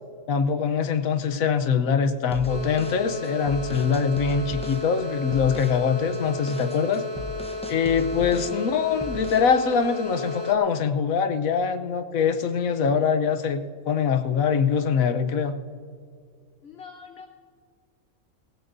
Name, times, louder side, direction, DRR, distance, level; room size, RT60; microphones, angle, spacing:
voice 1, 0.3-7.1 7.7-15.5, left 6 dB, 80° left, 9 dB, 1.3 m, -23 dB
sound 1, 2.3-4.9 5.3-5.8 6.1-8.6 9.0-9.5, left 2 dB, 5° left, 0.7 m, -38 dB
sound 2, 2.5-10.6, left 2 dB, 20° right, 1.5 m, -34 dB
voice 2, 16.6-17.3, left 5 dB, 55° left, 5 dB, 1.0 m, -44 dB
18.5 x 17.0 x 2.7 m, 2.2 s
omnidirectional pair, 1.4 m